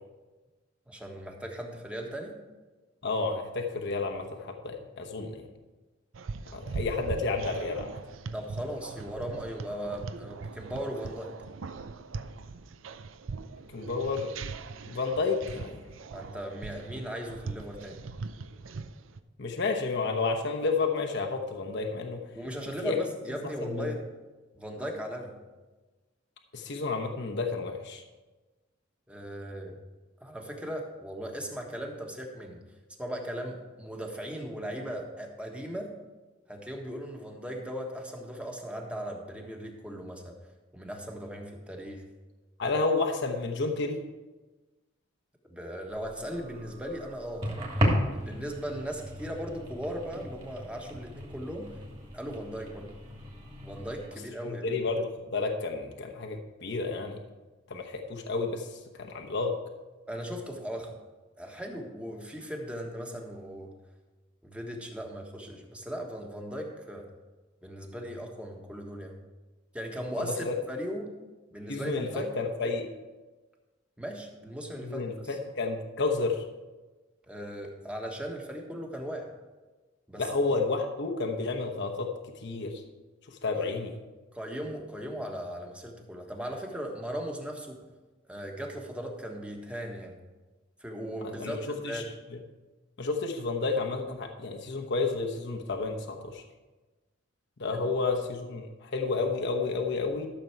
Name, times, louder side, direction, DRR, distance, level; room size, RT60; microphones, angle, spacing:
voice 1, 0.9-2.4 8.3-11.3 16.1-18.1 22.3-24.0 24.5-25.3 29.1-29.8 30.2-32.6 33.0-35.9 36.5-40.4 40.7-42.0 45.5-47.7 48.1-51.7 52.1-52.9 53.6-54.7 60.1-61.0 61.4-63.7 64.4-67.1 67.6-69.2 69.7-71.1 71.5-72.3 74.0-75.4 77.3-79.3 80.1-80.5 83.6-83.7 84.3-87.8 88.3-90.1 90.8-92.1, equal, 5° right, 1 dB, 1.4 m, -38 dB
voice 2, 3.0-5.4 6.5-8.0 13.7-14.3 14.9-15.8 19.4-22.2 22.8-23.0 23.4-23.9 26.5-28.0 42.6-44.0 54.4-57.2 57.7-59.5 70.2-70.5 71.7-72.9 74.8-76.4 80.2-82.1 82.4-82.8 83.3-83.9 91.2-92.0 93.0-96.4 97.6-100.3, left 3 dB, 65° left, 3 dB, 1.0 m, -31 dB
sound 1, 6.1-19.2, right 4 dB, 75° right, 0.5 m, -40 dB
sound 2, 45.9-54.1, equal, 30° right, 2.5 m, -35 dB
13.0 x 6.9 x 4.6 m, 1.2 s
head